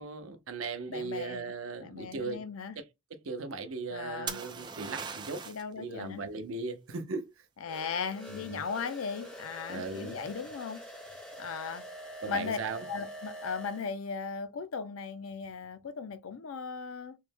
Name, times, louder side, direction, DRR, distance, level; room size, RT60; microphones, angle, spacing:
voice 1, 0.0-2.5 2.8-2.9 3.2-5.4 5.8-7.4 8.3-8.6 9.7-10.2 12.2-12.9, right 4 dB, 85° right, 0.6 m, -38 dB
voice 2, 0.9-1.5 1.8-2.8 3.9-4.4 5.5-6.2 7.6-10.8 11.4-11.9 12.3-12.6 12.9-17.2, left 5 dB, 90° left, 0.5 m, -37 dB
sound 1, 4.3-5.7 9.4-9.8, right 6 dB, 20° right, 0.3 m, -39 dB
sound 2, 7.7-13.9, equal, 5° left, 0.8 m, -45 dB
3.2 x 2.1 x 3.3 m
head